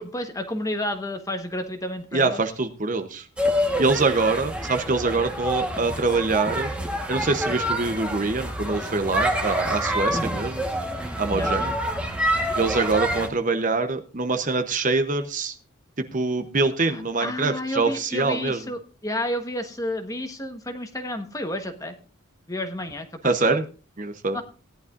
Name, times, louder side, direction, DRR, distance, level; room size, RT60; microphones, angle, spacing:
voice 1, 0.0-2.4 10.1-10.3 11.3-11.8 16.9-22.0 22.5-23.6 24.3-24.4, left 1 dB, 15° left, 6 dB, 1.2 m, -31 dB
voice 2, 2.1-3.3 3.8-6.7 7.1-10.7 11.2-11.7 12.6-15.6 16.0-18.6 23.2-23.6 24.0-24.4, right 3 dB, 40° right, 7 dB, 0.9 m, -24 dB
sound 1, 3.4-13.3, equal, 5° right, 1.4 m, -27 dB
17.0 x 11.0 x 2.6 m, 0.35 s
head